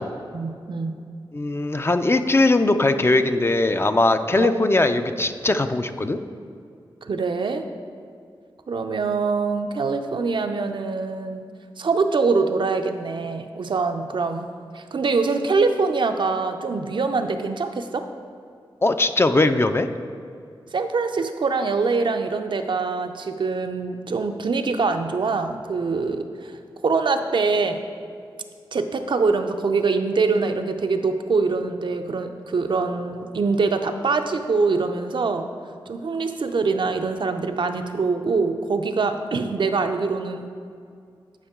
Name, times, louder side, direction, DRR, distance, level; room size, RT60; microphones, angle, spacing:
voice 1, 0.3-1.0 4.4-4.5 7.0-7.7 8.7-11.4 11.8-18.0 20.7-26.5 26.8-27.8 28.7-35.5 35.9-40.5, right 4 dB, 65° right, 7 dB, 0.5 m, -24 dB
voice 2, 1.3-6.2 18.8-19.9, left 2 dB, 25° left, 8 dB, 0.4 m, -20 dB
9.9 x 5.3 x 3.6 m, 2.3 s
cardioid pair, 60°, 9 cm